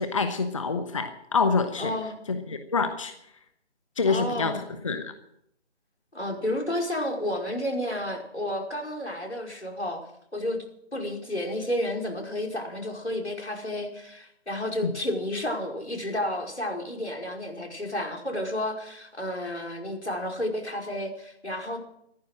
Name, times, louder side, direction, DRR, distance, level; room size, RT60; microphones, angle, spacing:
voice 1, 0.0-1.9 2.3-3.1 4.0-5.1 14.8-14.9, left 4 dB, 30° left, 9 dB, 1.0 m, -26 dB
voice 2, 1.8-2.2 4.1-4.6 6.1-10.0 10.3-10.6 10.9-21.8, left 1 dB, 85° left, 3 dB, 5.2 m, -31 dB
15.5 x 14.5 x 6.3 m, 0.76 s
figure-of-eight pair, 155°, 33 cm